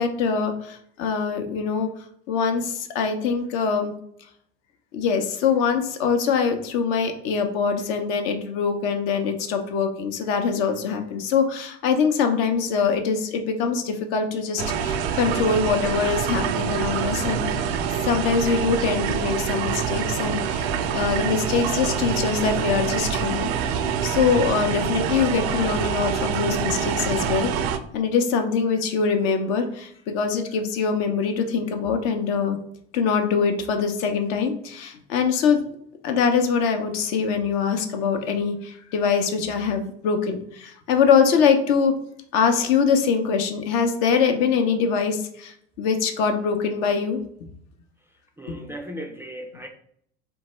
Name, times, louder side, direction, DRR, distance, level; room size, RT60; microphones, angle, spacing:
voice 1, 0.0-1.9 2.3-3.9 4.9-17.7 18.0-27.5 27.9-32.6 32.9-35.6 36.0-41.9 42.3-47.5 48.5-48.6, left 6 dB, 60° left, 6 dB, 0.7 m, -23 dB
sound 1, 14.6-27.8, right 7 dB, 70° right, 0.5 m, -26 dB
voice 2, 48.4-49.7, equal, 10° right, 2 dB, 0.4 m, -36 dB
3.6 x 2.2 x 3.0 m, 0.67 s
hypercardioid pair, 65°, 33 cm